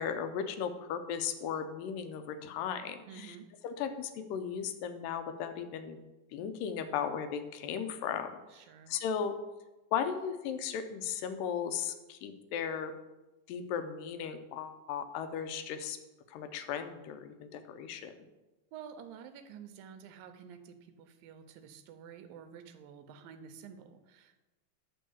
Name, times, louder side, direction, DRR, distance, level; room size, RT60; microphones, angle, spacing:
voice 1, 0.0-3.4 3.6-6.0 6.3-8.3 8.9-9.4 9.9-12.9 13.5-16.0 16.3-18.1, left 7 dB, 85° left, 8 dB, 2.3 m, -36 dB
voice 2, 3.1-3.5 8.5-9.0 18.7-24.4, right 7 dB, 85° right, 9 dB, 2.4 m, -50 dB
10.0 x 3.6 x 7.0 m, 1.1 s
omnidirectional pair, 4.0 m